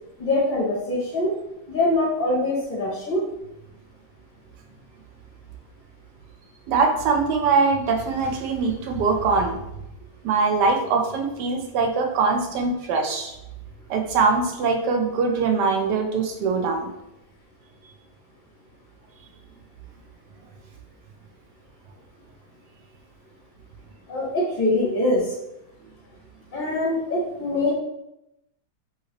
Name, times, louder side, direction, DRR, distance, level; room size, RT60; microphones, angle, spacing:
voice 1, 0.2-1.3 1.7-3.3 24.1-25.4 26.5-27.7, left 2 dB, 45° left, -4 dB, 0.6 m, -23 dB
voice 2, 6.7-9.6 10.2-13.4 13.9-16.9, right 4 dB, 80° right, 3 dB, 1.2 m, -22 dB
3.0 x 2.9 x 2.9 m, 0.87 s
omnidirectional pair, 1.8 m